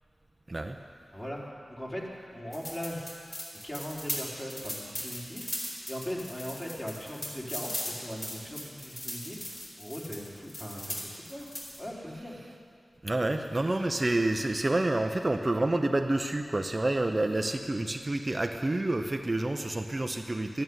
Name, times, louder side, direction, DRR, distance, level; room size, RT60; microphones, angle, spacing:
voice 1, 1.1-2.0 2.3-3.1 3.6-5.5 5.9-11.5 11.8-12.4, equal, 25° left, -4 dB, 4.0 m, -39 dB
sound 1, 2.5-11.8, left 1 dB, 40° left, 4.8 m, -39 dB
voice 2, 13.0-20.6, right 2 dB, 35° right, 5 dB, 0.8 m, -28 dB
12.5 x 11.0 x 9.5 m, 2.3 s
cardioid pair, 45°, 0 cm